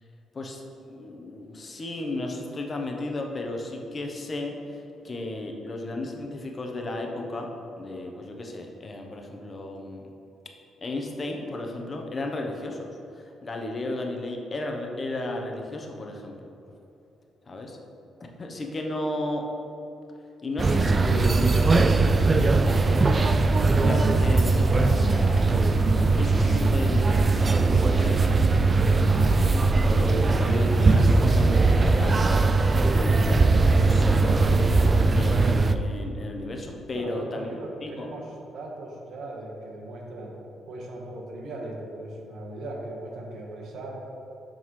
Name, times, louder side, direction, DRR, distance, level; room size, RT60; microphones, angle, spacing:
voice 1, 0.3-4.8 5.0-7.5 7.8-10.0 10.8-12.9 13.4-16.3 17.5-17.8 18.4-19.5 20.4-22.4 23.8-25.6 26.1-29.0 29.9-34.4 34.7-37.5 37.8-38.1, left 2 dB, 35° left, 2 dB, 0.9 m, -34 dB
sound 1, 20.6-35.7, right 3 dB, 30° right, 0.3 m, -20 dB
voice 2, 36.9-40.4 40.7-44.0, right 2 dB, 70° right, -1 dB, 1.3 m, -38 dB
11.0 x 3.9 x 3.2 m, 2.9 s
cardioid pair, 90°, 0 cm